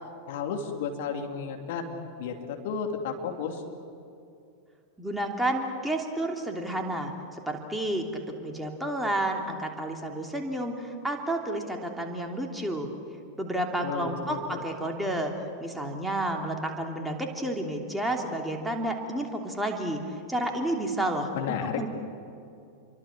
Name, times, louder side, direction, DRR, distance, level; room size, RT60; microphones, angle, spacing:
voice 1, 0.3-3.6 13.8-14.6 21.3-21.8, left 6 dB, 50° left, 3 dB, 2.9 m, -33 dB
voice 2, 5.0-12.9 13.4-15.3 15.6-21.3 21.8-21.9, right 1 dB, 5° right, 2 dB, 3.1 m, -31 dB
29.0 x 23.5 x 7.5 m, 2.6 s
figure-of-eight pair, 90°, 0 cm